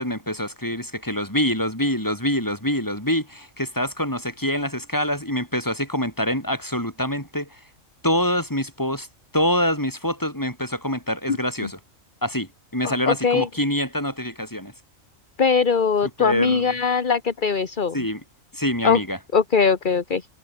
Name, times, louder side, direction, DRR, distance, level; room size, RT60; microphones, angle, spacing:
voice 1, 0.0-7.6 8.0-9.1 9.3-11.8 12.2-14.7 16.2-16.7 17.9-18.2 18.5-19.2, equal, 15° left, 6.4 m, -25 dB
voice 2, 12.8-13.5 15.4-18.0 18.8-19.0 19.3-20.3, left 5 dB, 40° left, 1.5 m, -21 dB
omnidirectional pair, 1.4 m